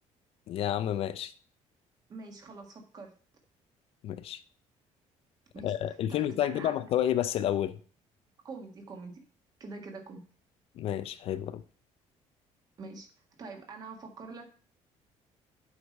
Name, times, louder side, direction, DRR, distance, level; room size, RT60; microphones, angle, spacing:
voice 1, 0.5-1.3 4.0-4.4 5.6-7.8 10.8-11.6, left 11 dB, 50° left, 0.5 m, -30 dB
voice 2, 2.1-3.1 5.5-5.7 6.1-6.7 8.4-9.2 9.6-10.2 12.8-13.1 13.4-14.6, right 3 dB, 30° right, 1.6 m, -44 dB
8.0 x 4.9 x 5.3 m
cardioid pair, 175°, 12 cm